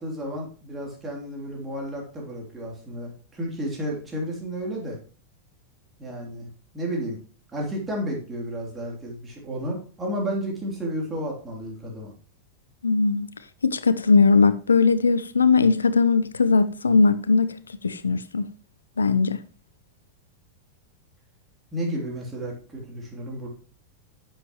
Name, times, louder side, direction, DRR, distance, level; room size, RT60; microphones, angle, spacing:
voice 1, 0.0-5.0 6.0-6.5 6.7-7.2 7.5-12.1 21.7-23.5, equal, 15° right, 3.2 m, -32 dB
voice 2, 12.8-13.3 13.6-17.5 17.8-18.5 19.0-19.4, left 4 dB, 75° left, 0.6 m, -19 dB
9.7 x 7.4 x 3.0 m
figure-of-eight pair, 90°, 0 cm